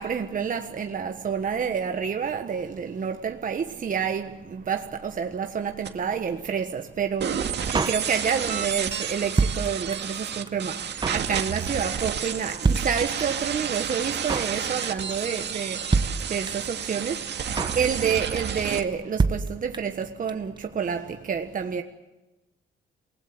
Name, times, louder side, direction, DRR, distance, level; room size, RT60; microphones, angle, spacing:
voice 1, 0.0-21.8, right 7 dB, 45° right, 1.4 m, -29 dB
sound 1, 5.9-6.0 7.2-18.8, right 7 dB, 60° right, 2.2 m, -31 dB
Drum kit, 7.7-8.6 8.8-8.9 9.1-10.2 10.5-10.6 10.7-11.3 11.6-11.8 12.1-12.2 12.4-12.5 12.6-13.5 13.7-13.8 14.0-14.6 14.8-15.1 15.4-15.5 15.7-15.8 15.9-16.8 17.0-17.1 17.3-17.8 18.1-18.4 18.6-18.7 18.9-19.0 19.2-20.0 20.3-20.4 20.6-20.7, right 4 dB, 20° right, 1.2 m, -26 dB
28.5 x 19.5 x 7.6 m
cardioid pair, 90°, 20 cm